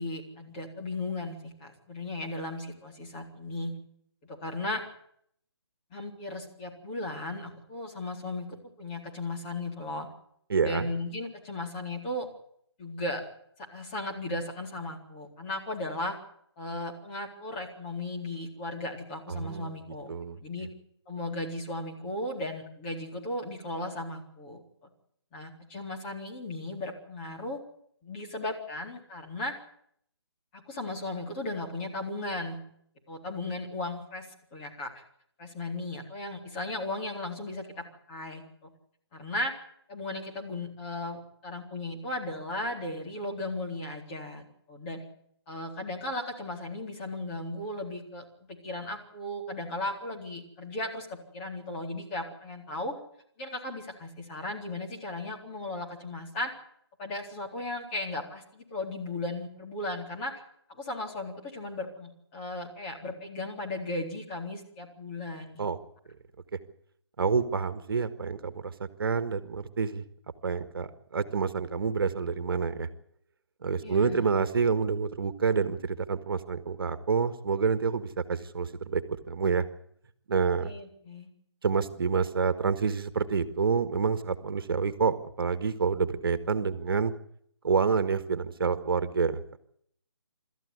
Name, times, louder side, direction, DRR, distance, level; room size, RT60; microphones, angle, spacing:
voice 1, 0.0-3.7 4.2-4.8 5.9-10.1 10.6-12.3 12.8-13.2 13.7-16.2 16.6-20.7 21.1-24.9 25.3-27.6 28.0-29.5 30.5-32.6 33.1-35.0 35.4-38.7 39.1-39.5 39.9-45.0 45.5-53.0 53.4-56.5 57.0-60.3 60.8-65.6 73.8-74.3 80.6-81.3, left 2 dB, 20° left, 1 dB, 3.9 m, -36 dB
voice 2, 10.5-10.9 19.3-19.8 20.1-20.4 65.6-65.8 66.5-66.6 67.2-70.0 70.4-72.9 73.6-79.6 80.3-80.7 81.6-87.1 87.6-89.6, right 5 dB, 55° right, 11 dB, 1.7 m, -28 dB
26.0 x 13.5 x 8.2 m, 0.68 s
hypercardioid pair, 160°, 14 cm